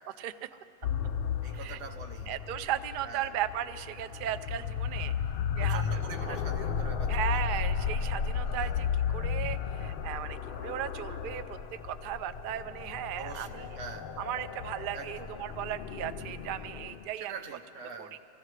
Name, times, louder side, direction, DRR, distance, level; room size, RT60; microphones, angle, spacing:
voice 1, 0.1-0.5 1.5-1.8 2.3-5.1 5.6-6.0 6.3-6.4 7.1-8.9 9.1-11.6 11.8-13.7 14.2-17.3 18.0-18.2, right 11 dB, 90° right, 11 dB, 0.4 m, -36 dB
sound 1, 0.8-17.1, left 7 dB, 85° left, 0.4 m, -34 dB
voice 2, 1.4-2.3 3.0-3.3 5.6-7.4 8.4-8.8 13.1-14.1 14.9-15.3 17.2-18.2, right 5 dB, 65° right, 4 dB, 1.2 m, -44 dB
25.0 x 15.5 x 3.2 m, 2.7 s
omnidirectional pair, 1.5 m